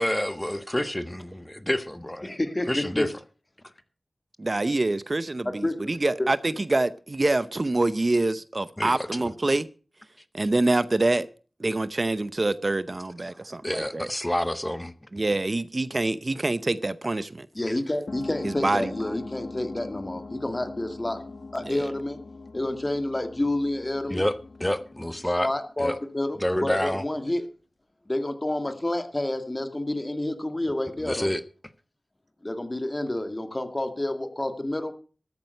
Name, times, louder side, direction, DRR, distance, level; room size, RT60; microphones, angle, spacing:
voice 1, 0.0-2.3 2.7-3.1 8.8-9.3 13.2-13.3 13.6-14.9 19.0-19.2 24.1-25.5 25.8-26.0 26.4-27.0 31.0-31.4, left 1 dB, 15° left, 1.3 m, -28 dB
voice 2, 2.2-3.0 5.5-5.9 6.2-6.3 17.5-21.2 21.5-22.2 22.5-24.2 25.4-27.4 28.1-31.3 32.4-34.9, left 1 dB, 30° left, 2.1 m, -29 dB
voice 3, 4.4-9.7 10.3-11.3 11.6-14.1 15.1-17.5 18.4-18.9 21.6-21.9, right 2 dB, 45° right, 0.7 m, -26 dB
sound 1, 18.1-26.2, left 3 dB, 75° left, 1.1 m, -41 dB
13.5 x 9.0 x 6.5 m
wide cardioid pair, 55°, 0 cm